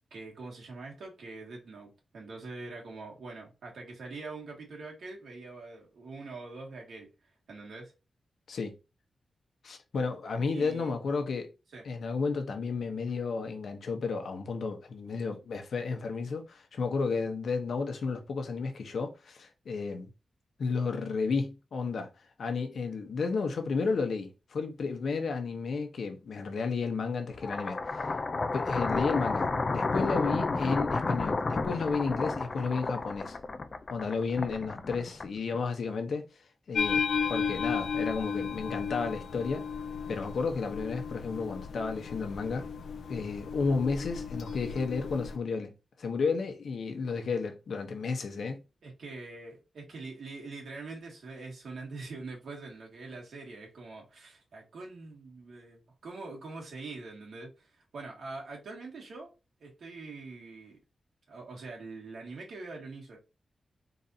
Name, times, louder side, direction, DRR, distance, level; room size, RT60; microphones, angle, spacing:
voice 1, 0.1-7.1 7.5-7.9 10.5-10.9 11.7-11.9 48.8-59.3 59.6-60.8 61.3-63.2, right 3 dB, 80° right, 1.9 m, -44 dB
voice 2, 9.6-11.5 11.8-20.1 20.6-22.1 22.4-28.1 28.5-33.4 33.9-36.3 36.7-37.0 37.3-39.6 40.1-42.7 43.1-48.6, left 4 dB, 70° left, 0.9 m, -32 dB
sound 1, 27.3-35.6, left 3 dB, 35° left, 0.4 m, -31 dB
sound 2, 36.7-45.4, left 6 dB, 85° left, 0.5 m, -34 dB
4.0 x 2.7 x 4.0 m
wide cardioid pair, 160°, 0 cm